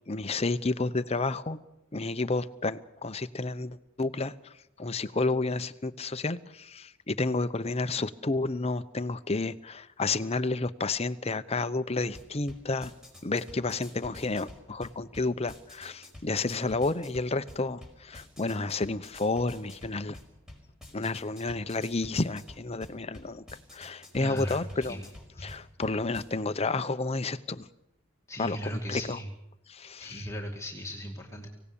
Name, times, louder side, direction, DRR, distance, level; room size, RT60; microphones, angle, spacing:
voice 1, 0.1-1.6 1.9-12.9 13.2-20.2 20.9-23.4 23.7-25.0 25.4-27.7 28.4-29.2 29.7-30.3, left 3 dB, 30° left, 12 dB, 0.8 m, -31 dB
sound 1, 12.1-26.2, left 1 dB, 5° right, 5.3 m, -50 dB
voice 2, 24.2-25.1 28.3-29.3 30.0-31.5, equal, 15° left, -1 dB, 2.2 m, -37 dB
25.5 x 17.5 x 7.0 m, 0.86 s
head